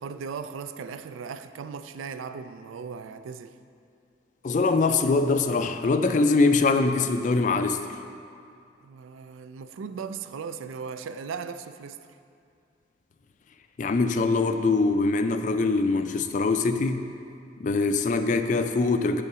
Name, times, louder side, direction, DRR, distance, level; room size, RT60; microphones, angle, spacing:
voice 1, 0.0-3.6 8.8-12.0, right 6 dB, 85° right, 0.3 m, -37 dB
voice 2, 4.4-7.9 13.8-17.1 17.6-19.2, left 3 dB, 40° left, 0.3 m, -23 dB
8.3 x 3.8 x 6.6 m
head